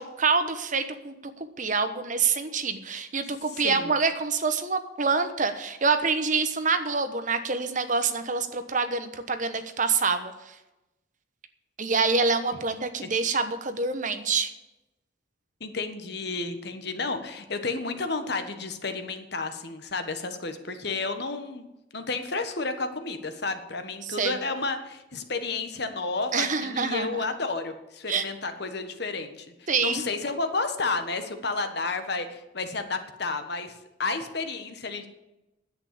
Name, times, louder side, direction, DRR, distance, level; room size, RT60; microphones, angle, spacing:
voice 1, 0.0-10.3 11.8-14.5 24.1-24.3 26.3-27.2 28.1-28.3 29.7-30.0, right 4 dB, 40° right, 9 dB, 1.1 m, -26 dB
voice 2, 3.5-3.9 13.0-13.1 15.6-21.6 21.9-35.1, left 3 dB, 55° left, 8 dB, 1.4 m, -31 dB
10.5 x 8.7 x 8.5 m, 0.96 s
head